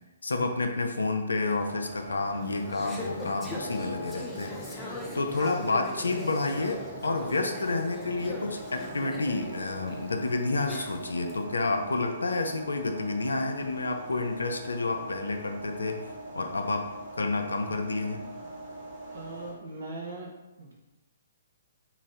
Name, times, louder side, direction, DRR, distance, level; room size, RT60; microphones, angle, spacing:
voice 1, 0.2-16.0 16.3-18.2, left 3 dB, 80° left, 5 dB, 0.4 m, -30 dB
sound 1, 1.4-19.5, right 1 dB, 40° right, 1.1 m, -42 dB
Conversation / Chatter, 2.4-11.3, left 1 dB, 5° left, 0.7 m, -40 dB
voice 2, 19.1-20.3 20.6-20.7, right 2 dB, 75° right, -2 dB, 1.1 m, -41 dB
4.0 x 2.4 x 3.7 m, 1.0 s
figure-of-eight pair, 130°, 0 cm